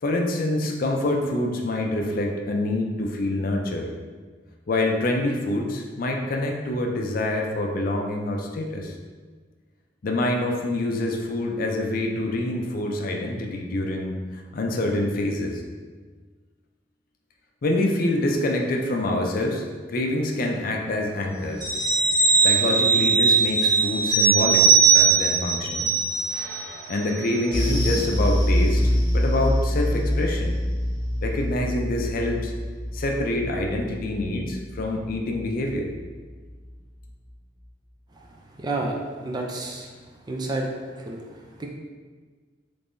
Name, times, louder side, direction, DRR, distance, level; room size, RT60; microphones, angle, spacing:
voice 1, 0.0-3.9 4.7-9.0 10.0-15.6 17.6-21.7 22.4-24.6 24.9-25.9 26.9-30.6 31.2-32.5 32.9-35.9, left 1 dB, 50° left, 2 dB, 0.4 m, -26 dB
sound 1, 21.6-26.7 27.0-27.2, right 5 dB, 50° right, 1.1 m, -19 dB
sound 2, 27.5-36.2 36.5-36.7 37.1-37.2, equal, 25° left, 0.9 m, -25 dB
voice 2, 38.6-39.9 40.3-40.7 41.0-41.2 41.6-41.7, right 2 dB, 25° right, 0 dB, 0.4 m, -29 dB
3.5 x 3.3 x 2.6 m, 1.5 s
head